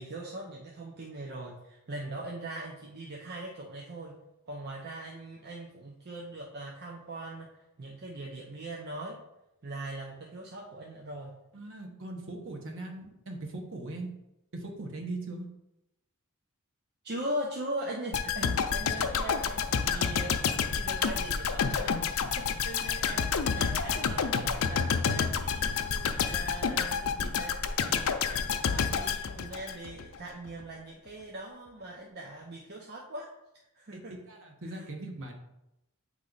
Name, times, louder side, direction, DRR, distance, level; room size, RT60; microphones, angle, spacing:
voice 1, 0.0-4.1 4.5-7.5 7.8-9.2 9.6-11.4 17.0-27.6 27.9-33.3 33.7-34.1 34.7-34.9, right 1 dB, 45° right, -2 dB, 0.7 m, -40 dB
voice 2, 11.5-14.1 14.5-15.5 33.9-34.0 34.3-35.3, right 2 dB, 60° right, 1 dB, 1.3 m, -40 dB
sound 1, 18.1-30.1 30.5-30.6, left 6 dB, 65° left, 0.5 m, -29 dB
8.5 x 3.2 x 4.0 m, 0.89 s
head